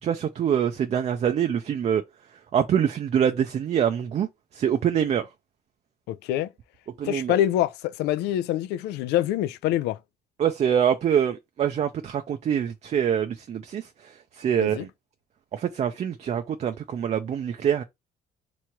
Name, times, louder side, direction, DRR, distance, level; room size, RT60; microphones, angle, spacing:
voice 1, 0.0-2.0 2.5-4.3 4.5-5.3 7.0-7.4 10.4-13.9 14.4-14.9 15.5-17.8, right 8 dB, 40° right, 0.5 m, -25 dB
voice 2, 6.1-6.5 7.0-10.0 14.6-14.9, left 12 dB, 85° left, 0.4 m, -25 dB
3.6 x 3.1 x 4.4 m
cardioid pair, 110°, 17 cm